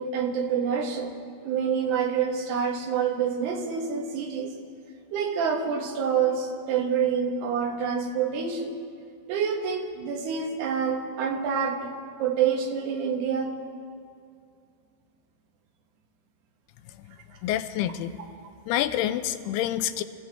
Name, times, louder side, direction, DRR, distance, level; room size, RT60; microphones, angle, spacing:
voice 1, 0.0-4.6 5.1-8.8 9.3-11.9 12.2-13.5, right 7 dB, 90° right, 2 dB, 3.4 m, -27 dB
voice 2, 17.4-18.2 18.7-20.0, left 12 dB, 90° left, 10 dB, 2.6 m, -27 dB
27.0 x 15.5 x 3.4 m, 2.3 s
omnidirectional pair, 4.5 m